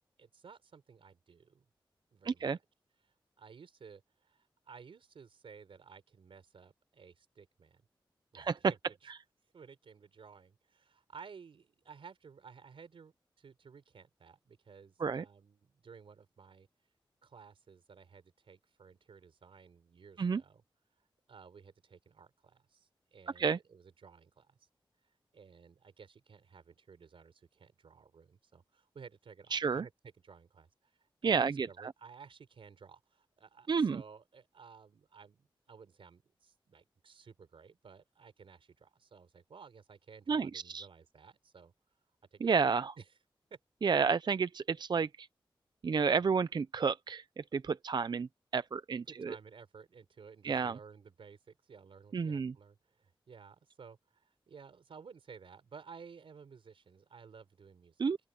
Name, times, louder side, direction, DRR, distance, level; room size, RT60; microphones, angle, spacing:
voice 1, 0.2-1.7 2.1-2.6 3.0-7.8 8.3-9.1 9.5-16.7 17.2-20.6 21.3-24.7 25.3-41.7 42.3-42.6 43.0-43.2 43.5-43.6 46.2-46.3 49.1-58.1, right 6 dB, 90° right, 4.2 m, -55 dB
voice 2, 2.3-2.6 8.3-8.6 15.0-15.2 20.2-20.4 23.4-23.6 29.5-29.8 31.2-31.9 33.7-34.0 40.3-40.9 42.4-42.9 43.8-45.3 45.8-49.4 50.4-50.8 52.1-52.5 58.0-58.2, right 5 dB, 55° right, 0.5 m, -31 dB
open air
wide cardioid pair, 70°, 9 cm